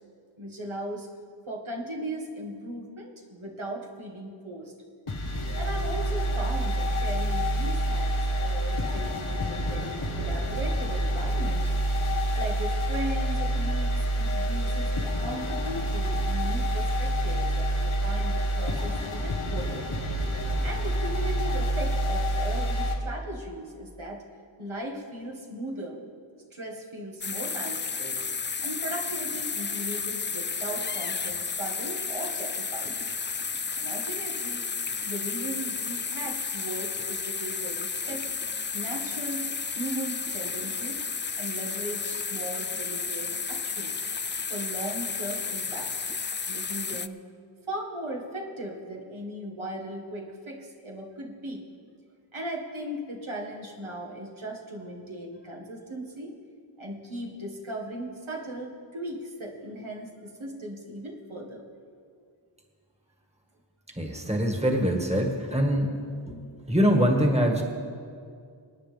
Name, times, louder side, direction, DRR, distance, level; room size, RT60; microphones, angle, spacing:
voice 1, 0.4-1.1 1.5-4.7 5.6-8.1 8.4-11.7 12.4-14.9 15.2-19.9 20.6-24.2 24.6-26.0 26.5-28.2 28.6-33.0 33.8-34.7 35.1-38.2 38.7-39.4 39.7-41.0 41.4-44.0 44.5-45.9 46.5-47.2 47.7-51.6 52.3-56.3 56.8-61.7, right 1 dB, 75° right, -2 dB, 1.9 m, -37 dB
sound 1, 5.1-23.0, right 1 dB, 90° left, 1.4 m, -27 dB
sound 2, 27.2-47.1, left 5 dB, 25° left, 0.3 m, -32 dB
voice 2, 64.0-65.9 66.3-67.6, equal, 15° right, 2 dB, 1.8 m, -24 dB
26.0 x 9.5 x 3.5 m, 2.3 s
wide cardioid pair, 45°, 48 cm